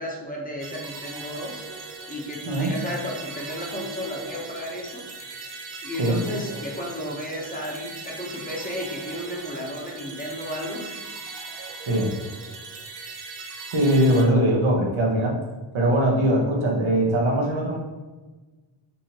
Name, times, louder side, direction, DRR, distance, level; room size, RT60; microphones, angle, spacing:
voice 1, 0.0-5.4 5.8-11.0, equal, 20° left, -2 dB, 0.9 m, -33 dB
sound 1, 0.6-14.2, right 4 dB, 60° right, 0.7 m, -39 dB
voice 2, 13.7-15.4 15.7-17.8, right 1 dB, 80° right, -1 dB, 1.2 m, -21 dB
5.4 x 2.8 x 3.0 m, 1.2 s
wide cardioid pair, 90°, 48 cm